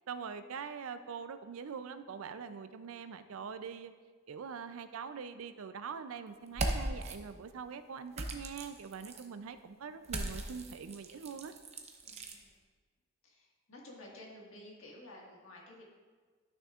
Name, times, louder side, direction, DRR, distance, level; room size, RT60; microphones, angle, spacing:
voice 1, 0.1-3.9 4.3-11.5, right 6 dB, 80° right, 11 dB, 0.4 m, -43 dB
sound 1, 6.5-7.2 8.1-9.3 10.0-12.4, right 2 dB, 30° right, 0.6 m, -38 dB
voice 2, 12.0-12.5 13.2-15.8, left 1 dB, 70° left, -2 dB, 1.7 m, -52 dB
11.5 x 6.3 x 2.4 m, 1.5 s
head